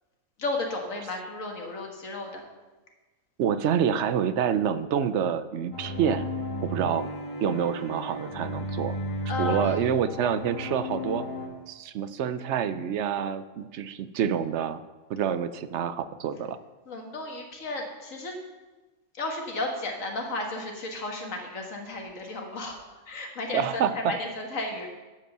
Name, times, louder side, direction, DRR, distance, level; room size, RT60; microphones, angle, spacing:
voice 1, 0.4-2.4 9.3-9.8 16.9-18.4 19.1-22.8 23.1-24.9, left 2 dB, 70° left, 2 dB, 1.9 m, -33 dB
voice 2, 3.4-6.3 6.6-7.1 7.4-9.0 9.4-11.3 11.7-14.8 15.1-16.6 23.5-24.1, right 8 dB, 65° right, 13 dB, 0.8 m, -27 dB
sound 1, 5.7-11.5, equal, 25° left, 2.1 m, -34 dB
12.0 x 5.2 x 6.6 m, 1.2 s
omnidirectional pair, 1.5 m